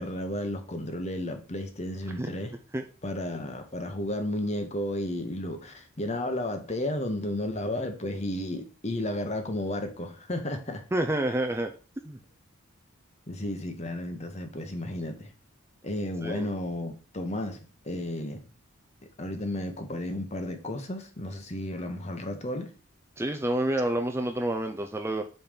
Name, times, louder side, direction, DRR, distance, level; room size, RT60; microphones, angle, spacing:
voice 1, 0.0-2.5 3.0-10.8 13.3-15.3 15.8-18.4 19.2-22.7, left 1 dB, 30° left, 1.0 m, -33 dB
voice 2, 10.9-11.7 12.0-12.2 16.2-16.5 23.2-25.2, right 1 dB, 10° right, 0.4 m, -28 dB
5.4 x 4.5 x 5.0 m
head